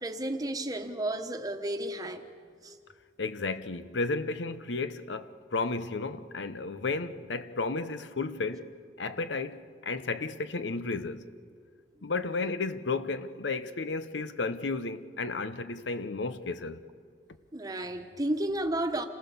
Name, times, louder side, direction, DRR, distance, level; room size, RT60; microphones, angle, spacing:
voice 1, 0.0-2.2 2.6-2.8 17.5-19.0, right 1 dB, 20° right, 1.2 m, -32 dB
voice 2, 3.2-8.7 9.0-11.3 12.0-16.8, left 3 dB, 85° left, 0.8 m, -33 dB
28.0 x 19.0 x 7.0 m
head